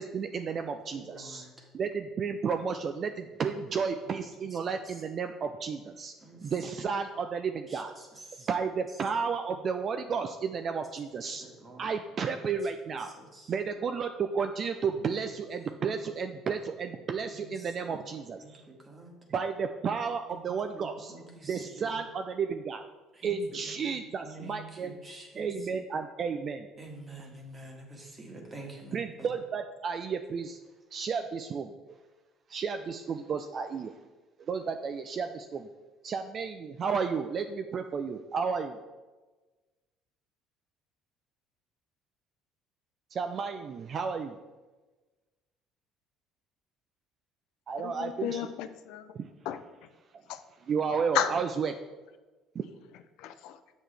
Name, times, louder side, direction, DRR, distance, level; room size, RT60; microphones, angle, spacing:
voice 1, 0.0-1.4 1.7-6.1 6.4-7.9 8.5-11.4 11.8-13.1 13.5-18.6 19.3-21.1 21.4-22.8 23.2-24.9 25.4-26.7 28.9-30.6 30.9-32.0 32.5-33.9 34.5-35.7 36.0-38.8 43.1-44.4 47.7-48.5 49.1-49.3 50.6-51.7 52.5-52.6, right 5 dB, 45° right, 7 dB, 0.4 m, -32 dB
voice 2, 0.9-1.7 4.0-4.2 4.5-4.9 6.2-6.5 7.7-8.5 8.9-9.0 11.3-11.8 12.9-13.5 15.8-16.0 17.3-19.1 20.3-22.0 23.1-25.8 26.8-29.3, right 2 dB, 30° right, 1 dB, 1.8 m, -48 dB
voice 3, 47.8-49.1 49.5-49.6 50.3-50.4 51.1-51.3 53.2-53.6, left 11 dB, 75° left, 9 dB, 0.4 m, -32 dB
7.3 x 6.2 x 3.4 m, 1.2 s
supercardioid pair, 75°, 0 cm